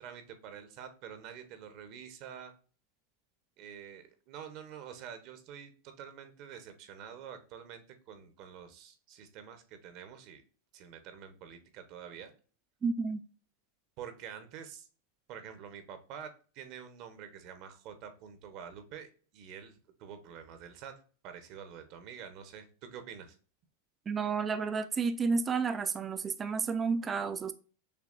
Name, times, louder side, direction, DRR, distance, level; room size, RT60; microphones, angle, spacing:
voice 1, 0.0-2.5 3.6-5.7 6.0-10.4 10.7-12.3 14.0-14.9 15.3-20.9 21.2-23.4, right 8 dB, 45° right, 0.9 m, -47 dB
voice 2, 12.8-13.2 24.1-27.5, right 5 dB, 20° right, 0.3 m, -31 dB
6.7 x 2.3 x 2.4 m
supercardioid pair, 145°, 0 cm